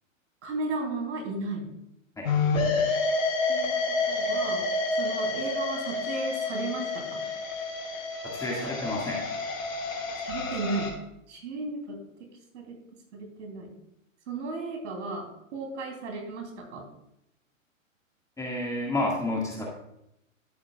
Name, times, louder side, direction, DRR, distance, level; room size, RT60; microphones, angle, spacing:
voice 1, 0.4-1.6 3.5-3.8 4.1-4.7 5.0-7.2 10.2-10.9 11.3-12.0 12.5-12.8 13.1-13.7 14.3-15.3 15.5-16.8, right 3 dB, 60° right, 2 dB, 3.3 m, -34 dB
sound 1, 2.2-10.9, left 3 dB, 75° left, 3.2 m, -29 dB
voice 2, 8.2-9.2 18.4-19.6, left 2 dB, 10° left, -3 dB, 1.8 m, -30 dB
12.5 x 8.6 x 2.4 m, 0.78 s
hypercardioid pair, 120°, 40 cm